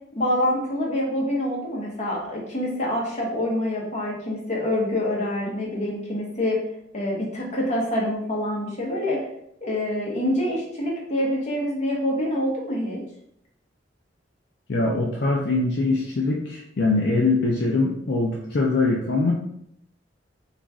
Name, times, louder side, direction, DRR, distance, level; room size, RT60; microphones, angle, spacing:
voice 1, 0.1-6.6 6.9-9.2 9.6-13.0, left 1 dB, 40° left, -3 dB, 0.9 m, -26 dB
voice 2, 14.7-19.3, left 3 dB, 60° left, -2 dB, 0.5 m, -22 dB
2.9 x 2.5 x 3.6 m, 0.74 s
head